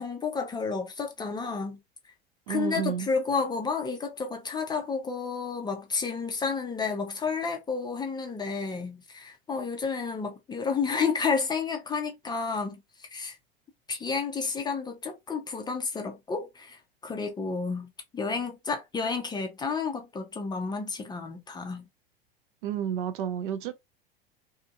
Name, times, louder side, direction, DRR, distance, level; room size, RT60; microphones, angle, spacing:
voice 1, 0.0-1.8 2.5-13.4 13.9-21.9, left 5 dB, 15° left, 0.5 m, -31 dB
voice 2, 2.5-3.1 22.6-23.7, right 9 dB, 55° right, 0.5 m, -30 dB
2.7 x 2.6 x 2.3 m
figure-of-eight pair, 80°, 30 cm